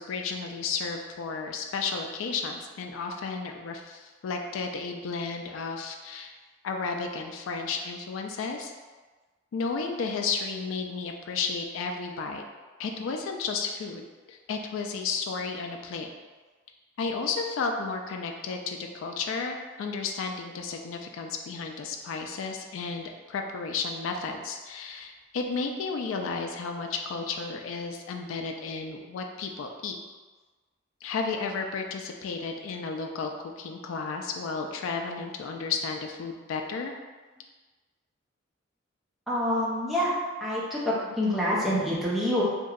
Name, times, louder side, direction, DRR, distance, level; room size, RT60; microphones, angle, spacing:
voice 1, 0.0-6.3 6.6-8.7 9.5-12.4 12.8-16.1 17.0-30.0 31.0-33.3 33.6-36.9, left 4 dB, 85° left, 4 dB, 0.3 m, -33 dB
voice 2, 39.3-40.1 40.4-42.4, equal, ahead, -8 dB, 0.6 m, -26 dB
2.9 x 2.6 x 2.4 m, 1.3 s
head